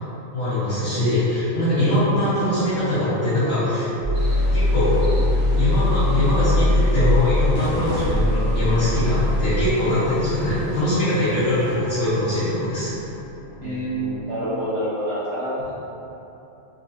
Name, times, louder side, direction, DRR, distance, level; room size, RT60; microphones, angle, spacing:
voice 1, 0.3-3.9 4.5-5.0 5.5-12.9, left 1 dB, 60° left, -15 dB, 1.5 m, -22 dB
sound 1, 0.7-14.2, equal, 80° left, 1.4 m, -36 dB
sound 2, 4.0-9.7, left 1 dB, 30° left, 0.5 m, -21 dB
sound 3, 4.1-11.8, equal, 35° right, 1.0 m, -37 dB
voice 2, 13.6-15.7, right 1 dB, 60° right, -10 dB, 1.4 m, -27 dB
3.6 x 3.1 x 2.8 m, 3.0 s
omnidirectional pair, 1.4 m